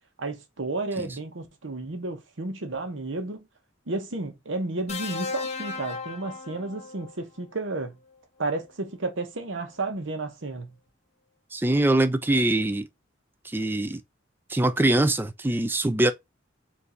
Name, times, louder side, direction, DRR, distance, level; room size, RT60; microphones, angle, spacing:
voice 1, 0.2-3.5 3.9-8.0 8.4-10.7, right 2 dB, 80° right, 1.0 m, -32 dB
sound 1, 4.9-7.1 8.5-8.7, left 4 dB, 35° left, 0.8 m, -35 dB
voice 2, 11.5-12.9 13.4-14.0 14.5-16.1, right 1 dB, 10° right, 0.3 m, -23 dB
4.5 x 2.6 x 3.9 m
head